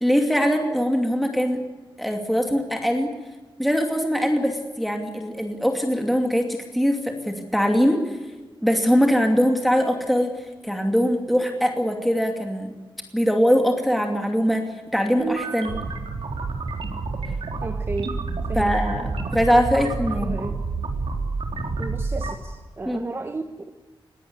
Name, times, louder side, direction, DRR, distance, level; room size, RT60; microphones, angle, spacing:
voice 1, 0.0-1.6 2.0-3.1 3.6-8.2 8.6-12.7 13.1-14.7 14.9-15.8 18.5-19.0 19.3-20.3 22.9-23.0, equal, ahead, 3 dB, 2.6 m, -22 dB
sound 1, 15.2-22.3, right 3 dB, 90° right, 4.1 m, -28 dB
voice 2, 17.6-18.2 18.5-18.7 20.1-20.6 21.8-23.7, right 3 dB, 25° right, 6 dB, 1.2 m, -33 dB
21.5 x 17.5 x 9.7 m, 1.3 s
wide cardioid pair, 155°, 9 cm